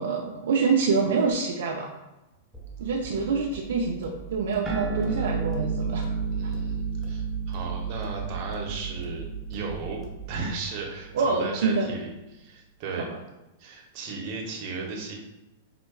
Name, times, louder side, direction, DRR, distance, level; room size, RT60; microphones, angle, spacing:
voice 1, 0.0-2.0 2.8-6.2 6.4-6.5 11.1-12.0 13.0-13.2, right 4 dB, 75° right, 0 dB, 0.4 m, -26 dB
sound 1, 2.5-10.5, right 6 dB, 5° left, 0.8 m, -43 dB
sound 2, 4.7-11.5, right 5 dB, 20° right, 0.6 m, -32 dB
voice 2, 6.3-10.0 10.3-13.1 13.6-15.1, right 4 dB, 50° right, 0 dB, 0.8 m, -36 dB
4.7 x 2.1 x 2.3 m, 0.98 s
hypercardioid pair, 120°, 0 cm